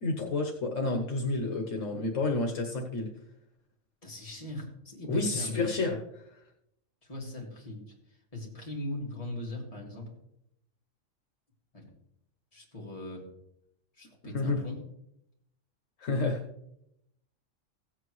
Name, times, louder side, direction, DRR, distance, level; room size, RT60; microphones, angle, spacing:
voice 1, 0.0-3.1 5.1-6.4 14.3-14.6 16.0-16.4, left 3 dB, 75° left, 1 dB, 1.5 m, -30 dB
voice 2, 4.0-5.6 7.0-10.1 11.7-11.9 12.5-13.2 14.0-14.8, left 1 dB, 25° left, -3 dB, 2.4 m, -40 dB
16.0 x 8.2 x 3.2 m, 0.80 s
omnidirectional pair, 1.3 m